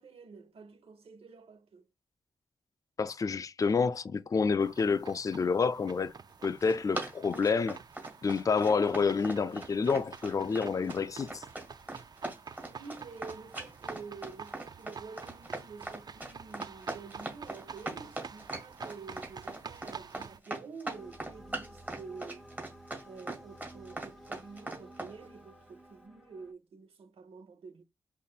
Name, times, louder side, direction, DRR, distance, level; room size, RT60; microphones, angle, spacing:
voice 1, 0.0-1.9 12.6-22.5 23.0-27.8, right 4 dB, 70° right, 0.9 m, -48 dB
voice 2, 3.0-6.1 6.4-7.8 8.2-11.4, left 5 dB, 35° left, 0.4 m, -28 dB
sound 1, 4.6-20.4, right 6 dB, 40° right, 0.4 m, -48 dB
Run, 6.4-25.1, right 2 dB, 15° right, 1.9 m, -40 dB
sound 2, 20.8-26.5, right 1 dB, ahead, 0.8 m, -53 dB
5.2 x 2.6 x 2.4 m
wide cardioid pair, 90°, 10 cm